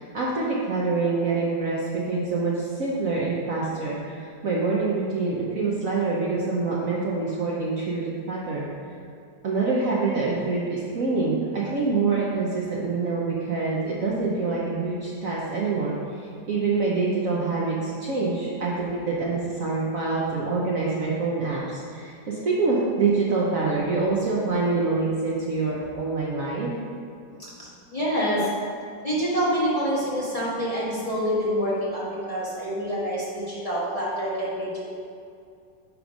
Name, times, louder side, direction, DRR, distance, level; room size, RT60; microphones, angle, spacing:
voice 1, 0.0-8.6 9.4-15.9 16.2-26.8, right 3 dB, 55° right, -5 dB, 1.1 m, -26 dB
voice 2, 27.4-28.5 29.0-34.8, equal, 20° left, -9 dB, 1.6 m, -27 dB
9.2 x 3.3 x 5.2 m, 2.4 s
omnidirectional pair, 2.0 m